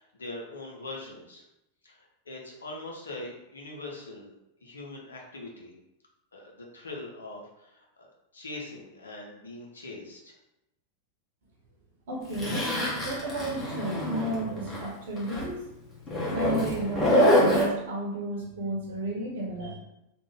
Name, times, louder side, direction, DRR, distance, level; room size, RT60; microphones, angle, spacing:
voice 1, 0.0-1.4 1.8-4.3 4.6-5.7 6.3-10.3, left 2 dB, 70° left, -1 dB, 0.8 m, -42 dB
voice 2, 12.1-15.7 16.3-19.8, right 1 dB, 55° right, -1 dB, 1.0 m, -33 dB
Zipper (clothing), 12.3-14.9 15.2-15.4 16.1-17.6, equal, 20° left, 1.3 m, -25 dB
3.4 x 2.4 x 3.4 m, 0.88 s
figure-of-eight pair, 90°, 0 cm